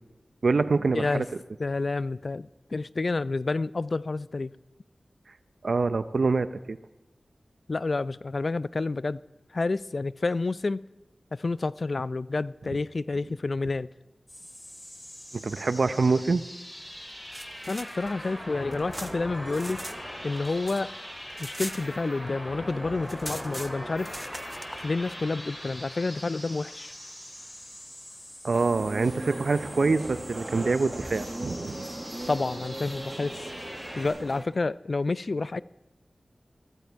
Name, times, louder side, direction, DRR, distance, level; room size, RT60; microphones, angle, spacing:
voice 1, 0.4-1.3 5.6-6.8 15.4-16.4 28.4-31.9, right 3 dB, 75° right, 0.6 m, -25 dB
voice 2, 1.6-4.5 7.7-9.2 9.5-10.8 11.3-13.9 17.7-19.8 20.2-20.9 21.4-24.1 24.8-26.9 32.3-33.4 34.0-35.6, left 3 dB, 60° left, 0.3 m, -29 dB
sound 1, 14.3-34.1, equal, 25° left, 5.6 m, -42 dB
sound 2, 17.1-20.0 20.3-22.4 22.7-22.8 23.0-24.8, equal, 5° right, 0.8 m, -41 dB
sound 3, 28.5-34.4, right 1 dB, 40° right, 1.5 m, -38 dB
14.5 x 13.5 x 4.6 m
cardioid pair, 40°, 0 cm